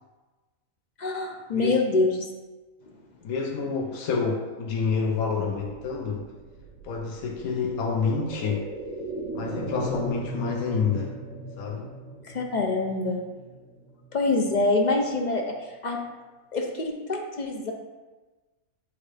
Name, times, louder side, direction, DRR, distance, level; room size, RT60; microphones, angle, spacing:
voice 1, 1.0-2.3 12.2-13.2 14.1-16.0 16.5-17.7, left 3 dB, 55° left, 1 dB, 0.5 m, -25 dB
voice 2, 3.2-6.3 6.8-8.7 9.3-11.1 11.6-11.9, left 5 dB, 80° left, 2 dB, 1.1 m, -28 dB
sound 1, 5.8-14.7 15.0-15.1, right 1 dB, 70° right, 1.8 m, -38 dB
8.5 x 3.6 x 3.3 m, 1.2 s
omnidirectional pair, 1.5 m